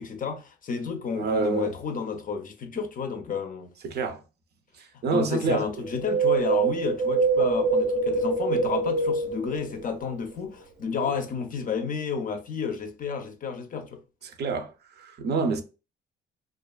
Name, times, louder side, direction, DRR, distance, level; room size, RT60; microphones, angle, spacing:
voice 1, 0.0-3.7 5.1-14.0, left 6 dB, 45° left, 0.5 m, -31 dB
voice 2, 1.2-1.7 3.8-4.2 5.0-5.7 14.2-15.6, right 4 dB, 55° right, 0.5 m, -27 dB
Wind, 5.8-10.2 10.4-10.5, right 4 dB, 80° right, 0.8 m, -25 dB
2.4 x 2.3 x 2.2 m
cardioid pair, 90°, 20 cm